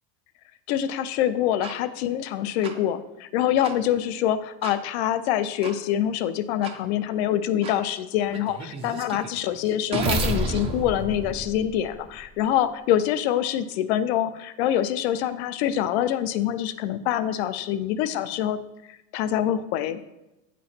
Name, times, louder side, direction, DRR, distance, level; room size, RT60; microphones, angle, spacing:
voice 1, 0.7-18.6 19.1-20.0, left 11 dB, 90° left, 11 dB, 0.5 m, -25 dB
sound 1, 1.6-1.7 2.6-2.7 3.6-3.7 4.6-4.8 5.6-5.7 6.6-6.7 7.6-7.8 8.3-12.2, right 2 dB, 20° right, 0.4 m, -30 dB
8.5 x 3.1 x 4.2 m, 0.95 s
cardioid pair, 170°, 31 cm